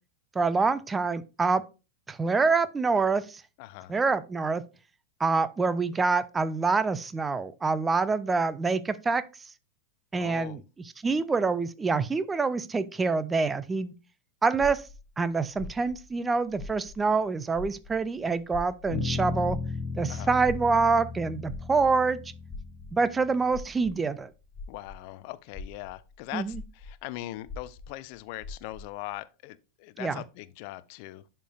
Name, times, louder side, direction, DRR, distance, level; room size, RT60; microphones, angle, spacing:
voice 1, 0.4-1.6 2.1-3.4 3.9-4.6 5.2-9.2 10.1-10.6 11.0-13.9 14.4-14.8 15.2-19.6 20.0-22.2 22.9-24.3 26.3-26.6 30.0-30.2, right 4 dB, 15° right, 0.4 m, -26 dB
voice 2, 3.6-4.0 10.1-10.6 20.1-20.3 24.7-31.2, left 17 dB, 45° left, 0.4 m, -40 dB
sound 1, 14.6-17.2 17.5-25.1 25.5-29.0, left 3 dB, 5° left, 2.9 m, -43 dB
Bass guitar, 18.9-23.3, left 4 dB, 90° right, 2.2 m, -35 dB
11.0 x 4.5 x 2.3 m
figure-of-eight pair, 90°, 0 cm